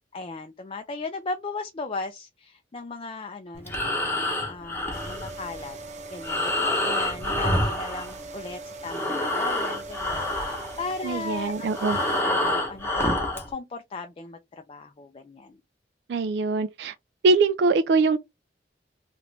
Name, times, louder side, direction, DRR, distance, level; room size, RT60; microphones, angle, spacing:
voice 1, 0.1-5.8 6.1-15.6, left 3 dB, 30° left, 0.4 m, -37 dB
Breathing, 3.5-8.5 8.8-13.5, left 1 dB, 15° left, 0.9 m, -28 dB
sound 1, 4.9-12.2, right 3 dB, 40° right, 0.7 m, -41 dB
voice 2, 11.0-12.0 16.1-16.9 17.2-18.2, right 3 dB, 65° right, 0.3 m, -22 dB
3.0 x 2.5 x 3.2 m
head